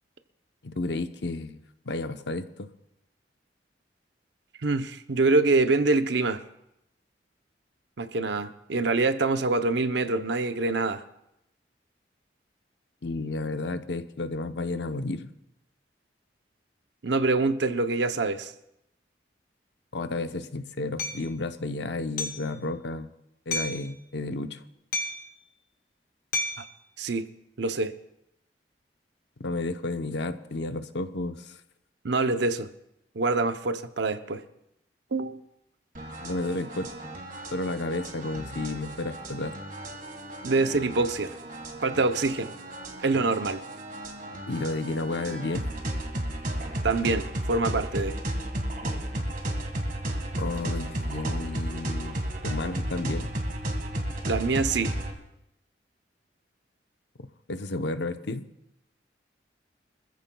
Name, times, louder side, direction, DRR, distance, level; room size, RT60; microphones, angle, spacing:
voice 1, 0.6-2.7 13.0-15.3 19.9-23.1 23.5-24.6 29.4-31.6 36.2-36.9 37.5-39.6 44.5-45.7 50.4-53.3 57.2-58.5, left 2 dB, 70° left, 9 dB, 0.8 m, -32 dB
voice 2, 4.6-6.4 8.0-11.0 17.0-18.5 26.6-26.7 27.0-27.3 27.6-27.9 32.0-32.7 33.2-34.4 35.1-35.4 40.4-41.3 41.8-42.5 43.0-43.6 46.8-48.2 54.3-54.9, right 3 dB, 70° right, 10 dB, 0.7 m, -25 dB
Hammer, 21.0-21.2 22.2-22.5 23.5-23.9 24.9-25.3 26.3-26.7, left 2 dB, 50° left, 1.1 m, -31 dB
sound 1, 35.9-55.1, right 1 dB, 50° right, 1.7 m, -34 dB
25.0 x 14.5 x 2.3 m, 0.83 s
head